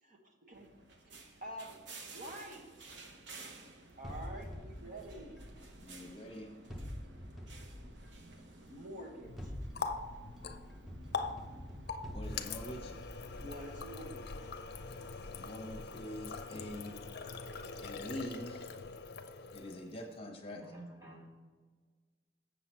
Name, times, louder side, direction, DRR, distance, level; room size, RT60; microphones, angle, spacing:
voice 1, 0.0-0.7 1.0-1.8 2.1-2.9 4.0-5.4 8.7-9.5 13.4-14.3, right 1 dB, 50° right, 0 dB, 1.4 m, -47 dB
sound 1, 0.5-17.9, right 2 dB, 80° right, 1.0 m, -55 dB
sound 2, 4.0-6.2 6.7-8.5 9.2-14.3, equal, ahead, 0.7 m, -47 dB
voice 2, 5.8-6.5 12.1-12.9 15.3-17.0 17.8-18.8 19.5-20.6, left 1 dB, 30° left, 1 dB, 1.2 m, -45 dB
Water tap faucet, 9.2-20.0, left 4 dB, 60° left, 0.6 m, -43 dB
voice 3, 20.6-21.3, right 1 dB, 20° right, -1 dB, 1.8 m, -51 dB
7.6 x 6.9 x 4.5 m, 1.5 s
head